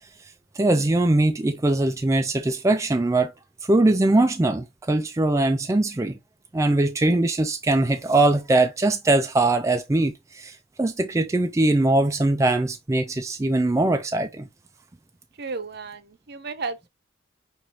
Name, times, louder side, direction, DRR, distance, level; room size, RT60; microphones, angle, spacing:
voice 1, 0.2-3.3 3.6-6.2 6.5-14.5, right 2 dB, 15° right, 0.3 m, -21 dB
voice 2, 15.4-16.9, right 4 dB, 55° right, 0.7 m, -33 dB
6.1 x 3.0 x 2.7 m
head